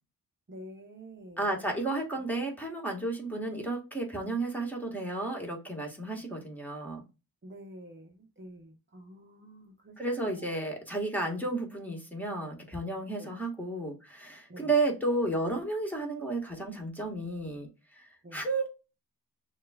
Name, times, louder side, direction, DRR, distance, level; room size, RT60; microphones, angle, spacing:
voice 1, 0.5-1.5 7.4-10.6 13.2-13.3 14.5-14.7 18.2-18.4, equal, 30° right, 1 dB, 0.8 m, -49 dB
voice 2, 1.4-7.0 10.0-18.7, right 2 dB, 5° left, 0 dB, 1.5 m, -32 dB
6.4 x 2.3 x 2.3 m, 0.29 s
cardioid pair, 60°, 41 cm